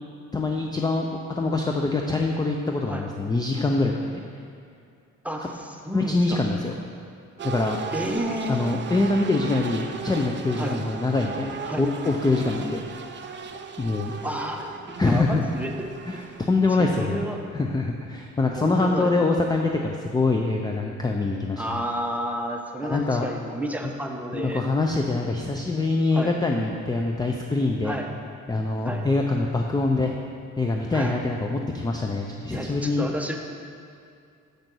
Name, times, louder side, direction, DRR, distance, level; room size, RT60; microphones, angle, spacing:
voice 1, 0.3-3.9 5.4-5.5 5.9-6.8 7.4-7.8 8.5-12.8 13.8-14.2 15.0-15.4 16.1-17.2 17.5-21.6 22.8-23.3 24.3-28.0 28.5-30.2 30.6-33.1, left 3 dB, 15° left, 2 dB, 0.5 m, -24 dB
voice 2, 5.2-6.4 7.9-8.8 10.6-10.8 11.7-11.9 14.2-16.2 16.8-17.4 18.5-19.3 21.6-24.6 26.1-26.3 27.8-28.1 28.8-29.0 30.9-31.1 32.5-33.4, equal, 5° right, 1 dB, 0.8 m, -31 dB
sound 1, 7.4-16.9, right 5 dB, 40° right, 0.6 m, -37 dB
6.6 x 5.2 x 6.1 m, 2.4 s
cardioid pair, 90°, 30 cm